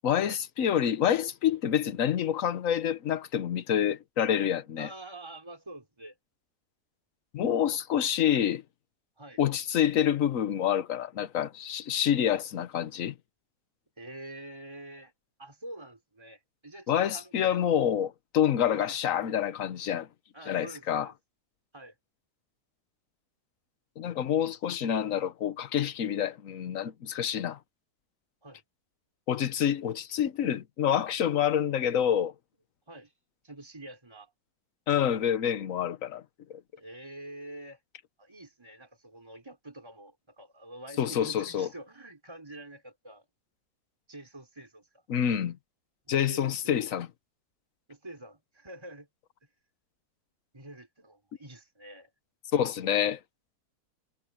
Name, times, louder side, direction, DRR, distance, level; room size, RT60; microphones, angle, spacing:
voice 1, 0.0-4.9 7.3-8.6 9.4-13.1 16.9-20.1 20.5-21.1 24.0-27.6 29.3-32.3 34.9-36.2 41.0-41.7 45.1-45.6 46.1-47.1 52.5-53.2, left 9 dB, 60° left, 1.3 m, -27 dB
voice 2, 4.8-6.2 9.2-9.4 12.3-12.4 14.0-15.1 15.4-17.6 18.6-19.0 20.3-21.1 21.7-21.9 28.4-28.6 32.9-33.1 33.4-34.3 36.8-37.8 38.2-43.3 44.1-45.0 46.0-47.0 47.9-49.1 50.5-52.1, right 1 dB, 15° right, 4.3 m, -46 dB
omnidirectional pair, 1.7 m